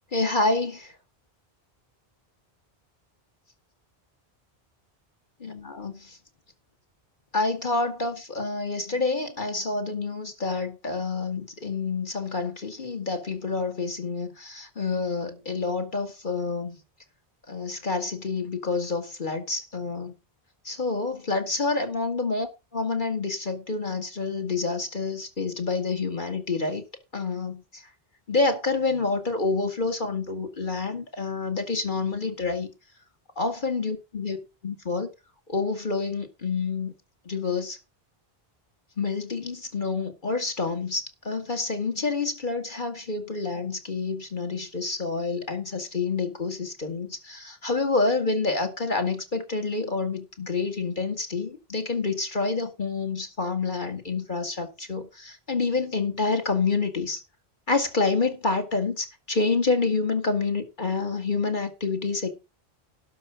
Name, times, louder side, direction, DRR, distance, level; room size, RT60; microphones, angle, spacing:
voice 1, 0.1-0.9 5.4-6.2 7.3-16.8 17.5-20.1 20.7-22.5 22.7-26.8 27.1-27.8 28.3-32.7 33.4-34.4 34.6-35.1 35.5-36.9 37.3-37.8 39.0-57.2 57.7-62.3, left 3 dB, 50° left, 2.1 m, -28 dB
12.0 x 4.9 x 7.1 m
omnidirectional pair, 1.0 m